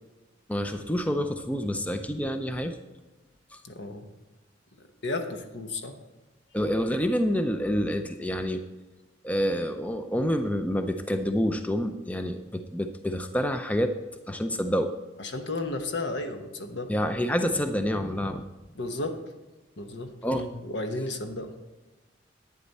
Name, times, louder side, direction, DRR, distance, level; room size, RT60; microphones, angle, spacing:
voice 1, 0.5-2.8 3.5-3.6 6.5-8.6 9.2-13.9 14.3-14.9 16.9-18.4 20.2-20.4, equal, 10° left, 7 dB, 0.5 m, -27 dB
voice 2, 3.6-4.1 5.0-6.0 15.2-16.9 18.7-19.2 19.8-21.5, left 2 dB, 65° left, 6 dB, 1.1 m, -33 dB
11.5 x 9.6 x 4.2 m, 1.1 s
head